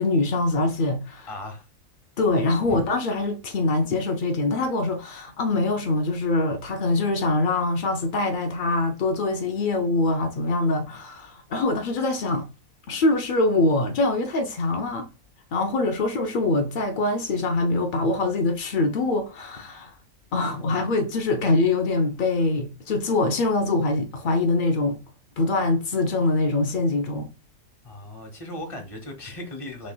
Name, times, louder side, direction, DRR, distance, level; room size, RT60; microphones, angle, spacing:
voice 1, 0.0-1.3 2.2-12.5 12.9-15.1 15.5-19.9 20.3-25.0 25.4-27.3, left 2 dB, 75° left, 0.4 m, -24 dB
voice 2, 1.3-1.7 2.7-2.8 20.4-20.8 27.8-29.9, left 1 dB, 25° left, 0.9 m, -37 dB
6.1 x 3.1 x 2.2 m
omnidirectional pair, 1.5 m